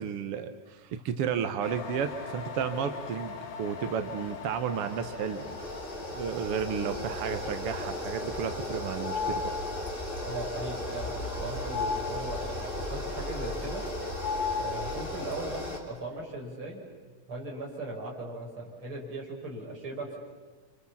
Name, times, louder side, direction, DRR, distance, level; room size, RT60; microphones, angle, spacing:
voice 1, 0.0-5.4 6.1-9.5, right 7 dB, 65° right, 8 dB, 1.5 m, -32 dB
sound 1, 1.6-6.9, left 5 dB, 55° left, 2.9 m, -42 dB
sound 2, 4.2-15.8, left 1 dB, 15° left, 3.1 m, -36 dB
sound 3, 9.0-10.0 11.7-12.7 14.2-15.3, left 5 dB, 85° left, 2.8 m, -34 dB
voice 2, 10.3-13.8 14.5-16.8 17.3-20.2, right 2 dB, 35° right, -2 dB, 6.4 m, -38 dB
30.0 x 26.5 x 7.2 m, 1.4 s
omnidirectional pair, 3.9 m